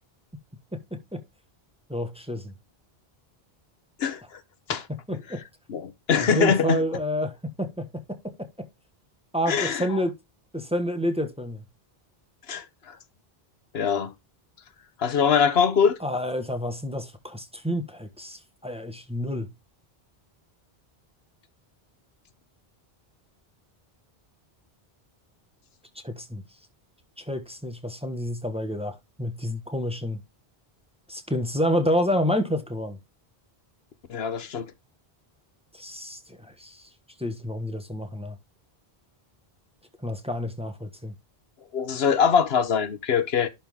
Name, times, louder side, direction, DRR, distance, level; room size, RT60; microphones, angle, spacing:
voice 1, 0.7-1.2 1.9-2.5 5.1-5.4 6.2-8.7 9.3-10.2 10.5-11.6 16.0-19.5 26.0-26.4 27.2-30.2 31.1-33.0 35.7-36.9 37.2-38.4 40.0-41.1, equal, 5° right, 1.3 m, -29 dB
voice 2, 5.7-6.8 9.5-9.9 12.5-12.9 13.7-14.1 15.0-16.0 34.1-34.7 41.7-43.5, left 7 dB, 80° left, 1.1 m, -23 dB
11.5 x 4.0 x 3.5 m
omnidirectional pair, 1.0 m